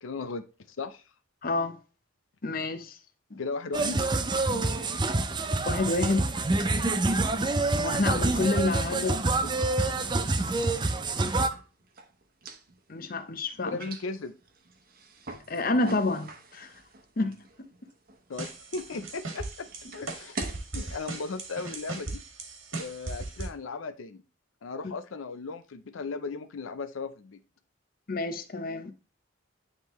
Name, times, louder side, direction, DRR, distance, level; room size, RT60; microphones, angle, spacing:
voice 1, 0.0-1.0 3.4-4.1 8.9-9.5 13.6-14.3 18.3-19.7 19.9-20.4 20.7-22.2 22.8-24.2 24.6-27.4, left 4 dB, 80° left, 0.5 m, -36 dB
voice 2, 1.4-1.8 2.4-3.0 3.3-3.4 4.5-4.6 5.7-6.3 7.8-9.1 12.9-13.8 15.5-16.7 17.2-17.4 24.8-24.9 28.1-28.9, left 2 dB, 45° left, 0.7 m, -28 dB
sound 1, 3.7-11.5, right 2 dB, 20° right, 0.5 m, -27 dB
sound 2, 11.4-20.7, right 3 dB, 45° right, 0.9 m, -45 dB
sound 3, 18.4-23.5, right 2 dB, 85° right, 1.8 m, -38 dB
9.6 x 3.6 x 3.0 m
head